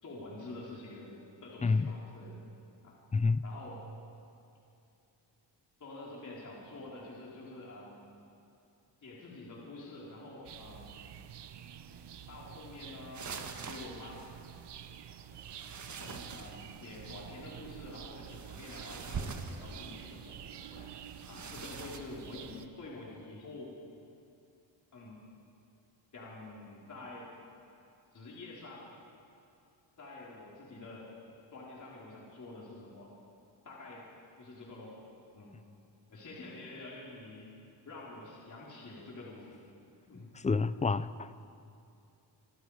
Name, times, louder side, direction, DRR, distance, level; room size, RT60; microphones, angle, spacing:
voice 1, 0.0-2.4 2.8-3.0 3.4-3.8 5.8-8.1 9.0-11.0 12.3-14.2 15.3-15.4 16.0-20.9 21.3-23.7 24.9-25.2 26.1-27.3 28.1-28.9 30.0-31.1 31.5-33.1 33.6-34.1 34.4-35.0 35.3-35.5 36.1-37.5 37.8-39.5 40.1-40.3, left 2 dB, 40° left, -5 dB, 4.2 m, -47 dB
voice 2, 1.6-2.0 3.1-3.4 40.3-41.3, left 4 dB, 15° left, 14 dB, 0.4 m, -28 dB
sound 1, 10.4-22.7, right 9 dB, 65° right, 1.1 m, -49 dB
sound 2, 13.1-14.4 15.4-17.3 18.3-20.2 21.1-22.0, right 5 dB, 40° right, 1.5 m, -44 dB
26.0 x 26.0 x 4.9 m, 2.6 s
wide cardioid pair, 150°, 45 cm